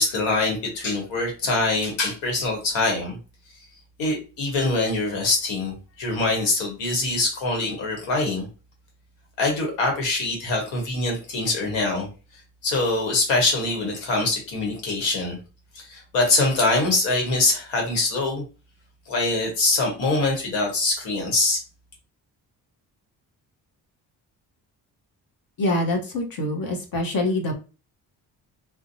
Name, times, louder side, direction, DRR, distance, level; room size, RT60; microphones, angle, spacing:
voice 1, 0.0-3.2 4.0-8.5 9.4-12.1 12.6-15.4 15.7-18.4 19.1-21.6, left 2 dB, 90° left, 1 dB, 1.1 m, -24 dB
voice 2, 25.6-27.5, left 1 dB, 50° left, 2 dB, 0.9 m, -25 dB
2.5 x 2.1 x 2.6 m, 0.32 s
supercardioid pair, 60°, 45 cm